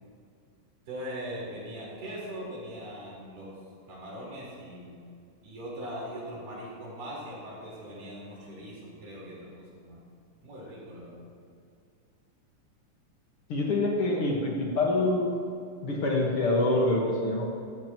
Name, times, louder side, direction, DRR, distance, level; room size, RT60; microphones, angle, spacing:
voice 1, 0.9-3.5 3.9-4.9 5.4-10.0 10.4-11.2, equal, 85° right, -5 dB, 5.9 m, -40 dB
voice 2, 13.5-15.4 15.8-17.5, left 2 dB, 50° left, -1 dB, 2.0 m, -26 dB
16.5 x 16.0 x 3.0 m, 2.3 s
omnidirectional pair, 3.7 m